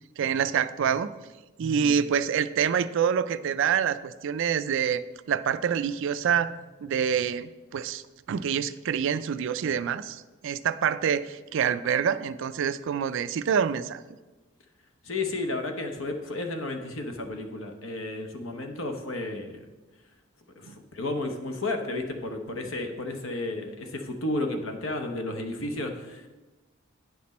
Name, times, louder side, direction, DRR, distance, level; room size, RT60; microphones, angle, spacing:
voice 1, 0.2-1.1 1.6-5.0 5.3-8.0 8.3-14.0 20.6-20.7, right 7 dB, 65° right, 14 dB, 0.4 m, -26 dB
voice 2, 15.0-19.6 20.6-26.3, left 2 dB, 70° left, 5 dB, 0.9 m, -32 dB
9.2 x 5.9 x 4.2 m, 1.2 s
head